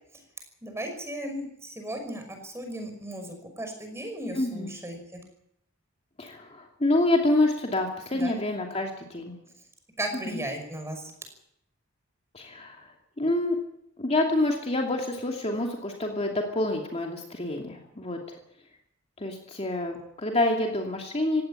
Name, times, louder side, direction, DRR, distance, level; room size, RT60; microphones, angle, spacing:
voice 1, 0.6-5.2 8.1-8.4 10.0-11.1, right 1 dB, 15° right, 5 dB, 5.7 m, -36 dB
voice 2, 4.3-4.7 6.2-9.4 10.3-10.4 12.3-12.8 13.2-13.6 14.0-18.2 19.2-21.4, left 2 dB, 30° left, 1 dB, 2.7 m, -27 dB
17.5 x 17.0 x 10.0 m, 0.74 s
head